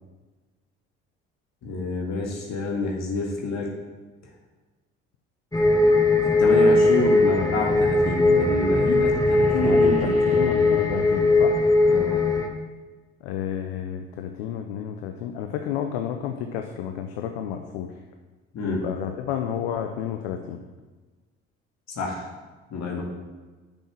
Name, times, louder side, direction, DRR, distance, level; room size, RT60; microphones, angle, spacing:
voice 1, 1.6-3.7 6.4-10.4 11.8-12.3 18.5-18.9 22.0-22.3 22.7-23.0, left 2 dB, 55° left, -1 dB, 2.0 m, -28 dB
sound 1, 5.5-12.5, left 2 dB, 10° left, 1.2 m, -20 dB
sound 2, 7.0-11.9, right 2 dB, 25° right, 2.7 m, -34 dB
voice 2, 9.6-11.6 13.2-17.9 18.6-20.6, left 9 dB, 80° left, 5 dB, 0.7 m, -31 dB
6.9 x 6.1 x 7.1 m, 1.3 s
hypercardioid pair, 60°, 32 cm